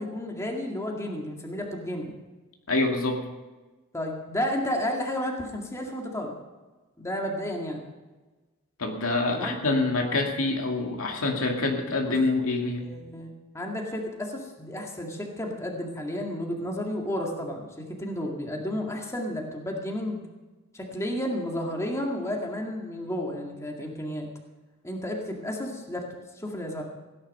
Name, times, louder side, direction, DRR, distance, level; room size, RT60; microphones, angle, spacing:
voice 1, 0.0-2.1 3.9-6.3 7.0-7.8 9.3-9.6 12.1-12.2 12.8-20.2 20.7-24.3 24.8-26.8, left 1 dB, 15° left, 0 dB, 2.1 m, -32 dB
voice 2, 2.7-3.2 8.8-12.8, left 2 dB, 75° left, 2 dB, 2.2 m, -26 dB
16.5 x 10.5 x 5.5 m, 1.2 s
head